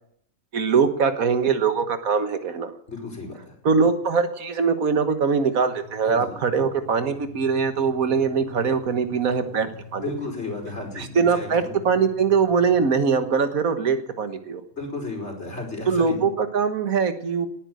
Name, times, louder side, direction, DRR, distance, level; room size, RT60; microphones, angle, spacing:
voice 1, 0.5-2.7 3.7-10.0 11.0-14.6 15.9-17.5, right 5 dB, 85° right, 9 dB, 1.8 m, -22 dB
voice 2, 2.9-3.5 6.0-6.4 10.0-11.8 14.7-16.3, left 3 dB, 50° left, 1 dB, 5.1 m, -34 dB
sound 1, 5.7-13.3, left 3 dB, 15° left, 7.6 m, -44 dB
19.0 x 9.8 x 7.8 m, 0.65 s
omnidirectional pair, 1.5 m